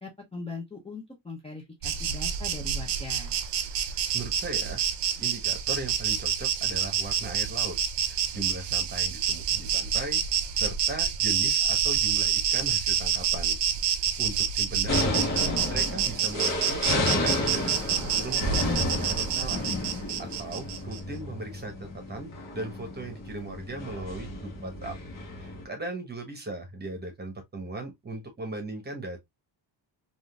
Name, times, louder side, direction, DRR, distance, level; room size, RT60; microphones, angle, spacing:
voice 1, 0.0-3.4, left 3 dB, 15° left, 0.7 m, -40 dB
Insect, 1.8-21.0, right 8 dB, 65° right, 0.6 m, -28 dB
voice 2, 4.1-4.8 5.2-7.8 8.1-10.2 10.5-13.6 14.2-15.3 15.7-17.9 18.1-19.7 20.2-25.0 25.4-29.2, right 2 dB, 20° right, 1.0 m, -38 dB
sound 1, 14.9-25.6, left 2 dB, 45° left, 1.2 m, -31 dB
3.6 x 2.6 x 2.3 m
wide cardioid pair, 150°, 45 cm